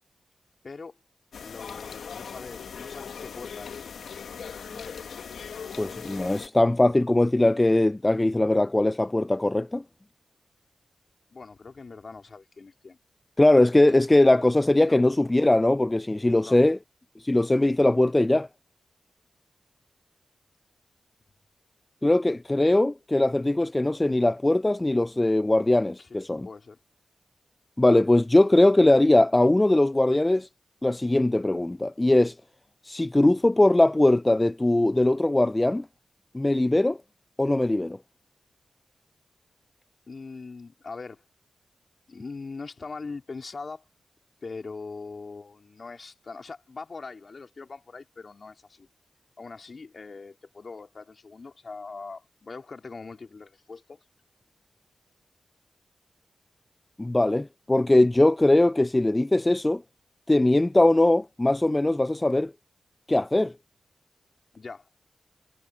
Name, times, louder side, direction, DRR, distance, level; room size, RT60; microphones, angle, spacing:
voice 1, 0.6-1.0 1.4-3.9 11.3-13.0 14.9-15.1 16.4-16.6 26.0-26.8 40.1-41.2 42.1-43.8 44.4-48.9 49.4-54.0 64.5-64.9, left 4 dB, 55° left, 3.5 m, -41 dB
sound 1, 1.3-6.5, left 6 dB, 80° left, 1.6 m, -39 dB
voice 2, 5.8-9.8 13.4-16.8 17.2-18.5 22.0-26.5 27.8-30.5 30.8-32.4 32.8-35.9 36.3-37.0 37.4-38.0 57.0-59.8 60.3-62.5 63.1-63.5, left 1 dB, 20° left, 0.4 m, -21 dB
cardioid pair, 40°, 0 cm